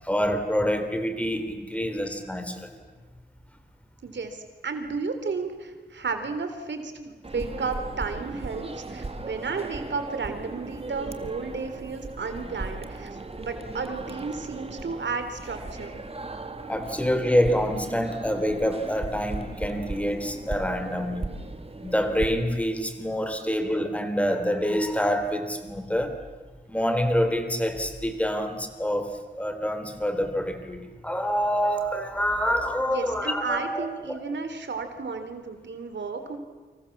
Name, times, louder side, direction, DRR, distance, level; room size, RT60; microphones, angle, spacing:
voice 1, 0.0-2.8 16.7-21.3 21.8-26.2 26.7-34.2, equal, 5° left, 7 dB, 3.7 m, -26 dB
voice 2, 4.0-16.0 32.9-36.4, right 4 dB, 85° right, 7 dB, 3.5 m, -33 dB
sound 1, 7.2-22.3, right 2 dB, 35° right, 2.1 m, -37 dB
29.5 x 26.0 x 7.3 m, 1.3 s
wide cardioid pair, 105°, 18 cm